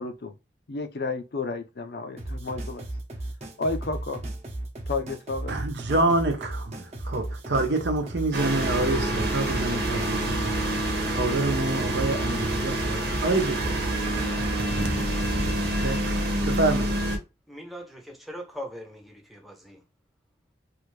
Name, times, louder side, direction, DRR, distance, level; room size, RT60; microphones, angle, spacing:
voice 1, 0.7-2.9 3.6-4.3 4.9-5.6, left 3 dB, 60° left, 0.5 m, -31 dB
sound 1, 2.2-15.4, right 1 dB, 40° right, 0.8 m, -35 dB
voice 2, 5.5-10.6 11.1-13.7 14.2-14.3 15.8-16.0 16.5-16.9, right 2 dB, 85° right, 0.8 m, -27 dB
sound 2, 8.3-17.2, right 1 dB, 65° right, 1.0 m, -27 dB
voice 3, 17.5-19.8, equal, ahead, 0.6 m, -40 dB
3.2 x 2.5 x 3.2 m
head